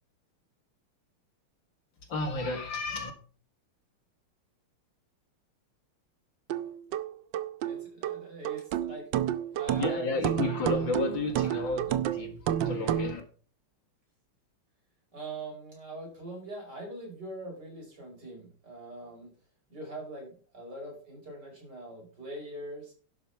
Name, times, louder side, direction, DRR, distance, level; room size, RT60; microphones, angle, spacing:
voice 1, 2.0-3.1 9.7-13.2, left 3 dB, 60° left, 2.4 m, -32 dB
sound 1, 6.5-13.2, right 11 dB, 70° right, 1.2 m, -30 dB
voice 2, 7.6-9.1 9.5-10.2 15.1-19.3 19.7-22.9, right 1 dB, 50° right, 5.7 m, -42 dB
11.5 x 6.3 x 5.8 m
omnidirectional pair, 2.4 m